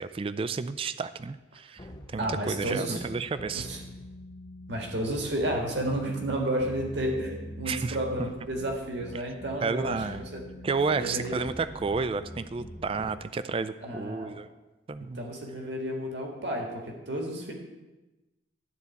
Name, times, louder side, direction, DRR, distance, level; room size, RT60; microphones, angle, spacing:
voice 1, 0.0-1.9 2.1-3.7 7.7-8.3 9.6-10.2 10.6-14.5 14.9-15.2, right 4 dB, 30° right, 13 dB, 0.3 m, -31 dB
sound 1, 1.8-13.1, left 1 dB, 20° left, 0.7 m, -44 dB
voice 2, 2.2-3.0 3.5-3.8 4.7-10.4 11.0-11.5 13.8-14.4 15.0-17.5, right 1 dB, 70° right, 0 dB, 1.8 m, -32 dB
12.5 x 4.1 x 8.2 m, 1.1 s
head